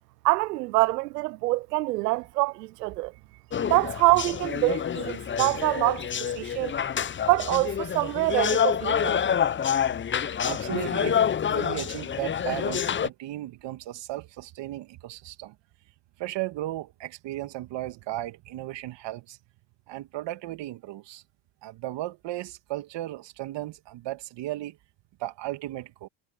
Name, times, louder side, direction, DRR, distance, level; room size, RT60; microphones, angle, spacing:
voice 1, 0.2-3.1 3.7-6.7 7.3-9.2, right 21 dB, 85° right, 0.7 m, -25 dB
sound 1, 3.5-13.1, left 8 dB, 25° left, 0.7 m, -27 dB
voice 2, 10.4-15.5 16.2-19.4 19.9-21.2 21.6-24.8 25.2-26.1, right 16 dB, 60° right, 2.6 m, -35 dB
hypercardioid pair, 65°, 47 cm